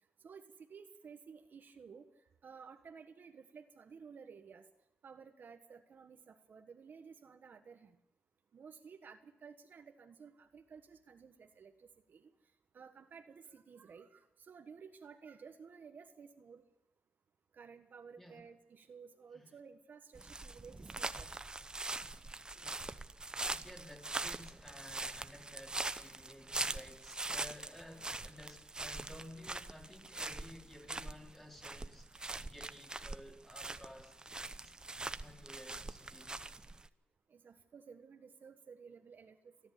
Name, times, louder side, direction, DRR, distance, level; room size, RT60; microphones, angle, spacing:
voice 1, 0.2-2.0 2.4-4.6 5.0-8.0 8.5-12.3 12.7-16.6 17.5-21.3 37.3-39.5, right 6 dB, 55° right, 1.4 m, -54 dB
voice 2, 18.2-18.5 19.3-19.5 22.5-23.0 23.3-34.1 34.6-34.7 35.2-36.4, left 1 dB, 10° left, 4.3 m, -54 dB
sound 1, 20.1-36.9, right 2 dB, 20° right, 0.8 m, -42 dB
28.0 x 11.0 x 8.6 m
cardioid pair, 85°, 4 cm